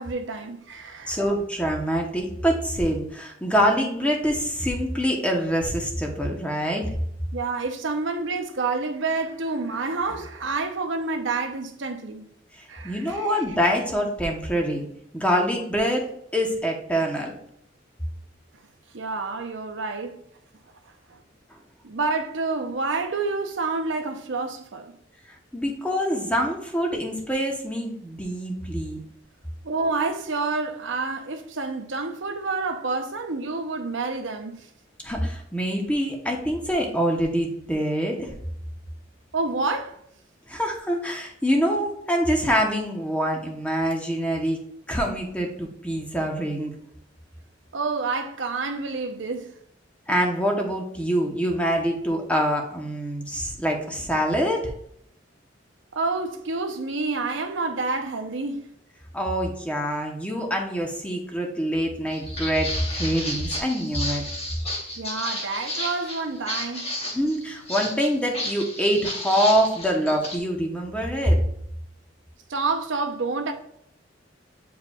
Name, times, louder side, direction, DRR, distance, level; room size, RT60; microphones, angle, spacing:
voice 1, 0.0-1.2 7.3-12.2 12.7-13.2 18.9-20.2 21.8-24.9 29.6-34.6 39.3-40.0 47.7-49.5 55.9-58.7 65.0-66.9 72.5-73.5, right 3 dB, 75° right, 0.8 m, -28 dB
voice 2, 1.1-6.9 12.6-14.9 15.1-16.0 16.3-17.3 25.5-29.0 35.0-38.4 40.5-44.6 44.9-46.7 50.1-54.6 59.1-64.2 67.1-71.4, equal, 5° left, 1.0 m, -25 dB
Walk footsteps, 62.1-70.4, left 1 dB, 35° left, 1.4 m, -32 dB
8.3 x 4.7 x 2.4 m
head